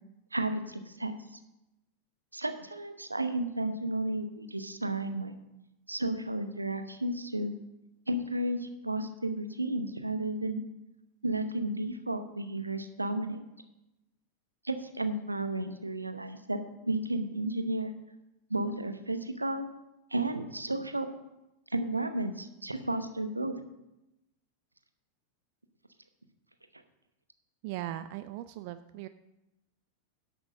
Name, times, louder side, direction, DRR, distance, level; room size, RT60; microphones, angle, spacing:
voice 1, 0.3-1.1 2.3-5.4 5.9-7.5 8.1-10.6 11.2-13.4 14.6-17.9 18.5-19.7 20.1-21.1 21.7-23.6, right 1 dB, 85° right, 9 dB, 0.9 m, -33 dB
voice 2, 27.6-29.1, right 13 dB, 45° right, 12 dB, 0.4 m, -39 dB
11.0 x 6.1 x 6.5 m, 0.93 s
figure-of-eight pair, 90°, 0 cm